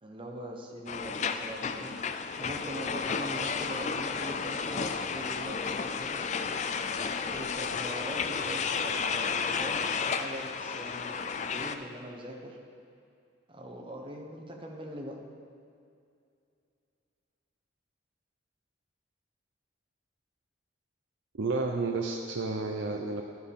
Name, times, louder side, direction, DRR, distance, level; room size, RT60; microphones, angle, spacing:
voice 1, 0.0-6.3 7.2-12.6 13.5-15.2, equal, 25° right, 1 dB, 1.1 m, -42 dB
sound 1, 0.9-11.8, left 5 dB, 35° left, 0.4 m, -32 dB
voice 2, 21.4-23.2, right 3 dB, 80° right, 2 dB, 0.6 m, -31 dB
11.5 x 11.0 x 3.6 m, 2.4 s
head